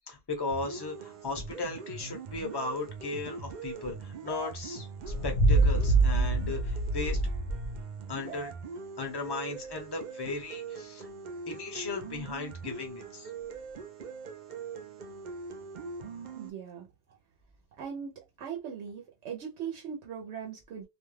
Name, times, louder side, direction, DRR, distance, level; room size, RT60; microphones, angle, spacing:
voice 1, 0.1-7.2 8.1-8.5 9.0-11.1 11.5-13.3, left 3 dB, 25° left, 0.7 m, -36 dB
sound 1, 0.5-16.5, right 5 dB, 55° right, 0.6 m, -42 dB
sound 2, 5.0-7.8, right 2 dB, 60° left, 1.0 m, -25 dB
voice 2, 16.3-16.9 17.8-20.8, right 7 dB, 85° right, 0.9 m, -39 dB
2.4 x 2.2 x 3.1 m
omnidirectional pair, 1.1 m